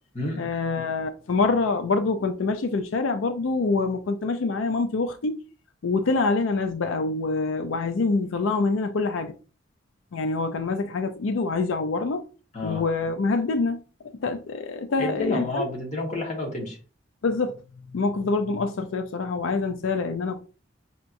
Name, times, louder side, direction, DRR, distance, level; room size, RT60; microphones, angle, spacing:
voice 1, 0.4-5.4 5.8-9.3 10.1-12.2 12.6-13.8 14.2-15.7 17.2-17.6 17.9-20.4, left 3 dB, 90° left, 0.4 m, -25 dB
voice 2, 15.0-16.8, left 2 dB, 35° left, 1.4 m, -29 dB
5.5 x 2.9 x 2.5 m
head